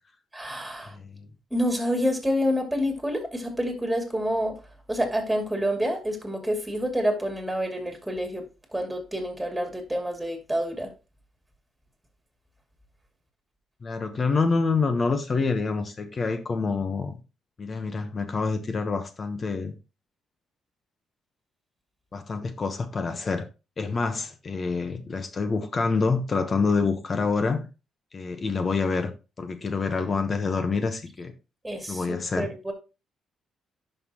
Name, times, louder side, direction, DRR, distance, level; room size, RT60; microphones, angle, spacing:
voice 1, 0.3-1.0 1.5-4.6 4.9-8.4 8.7-10.9 31.6-32.7, equal, 5° right, 2.6 m, -28 dB
voice 2, 0.9-1.3 13.8-17.2 17.6-19.8 22.1-23.5 23.8-27.7 28.1-29.1 29.4-31.3 31.9-32.5, left 4 dB, 40° left, 1.1 m, -27 dB
11.0 x 5.6 x 3.0 m
cardioid pair, 90°, 0 cm